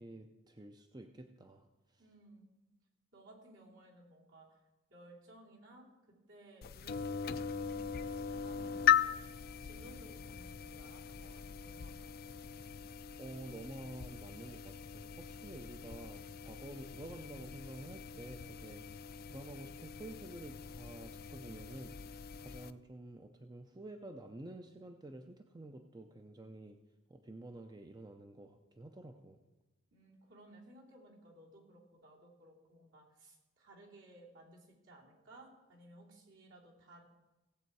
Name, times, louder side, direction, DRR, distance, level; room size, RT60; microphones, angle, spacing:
voice 1, 0.0-1.6 13.2-21.9 22.4-26.8 27.1-29.4, right 1 dB, 20° right, 5 dB, 0.5 m, -50 dB
voice 2, 2.0-2.5 3.1-4.6 4.9-5.9 6.3-9.2 9.6-12.4 29.9-37.0, right 1 dB, 70° right, -3 dB, 3.1 m, -58 dB
sound 1, 6.6-22.7, left 9 dB, 50° left, 0.4 m, -39 dB
17.0 x 7.8 x 4.7 m, 1.1 s
head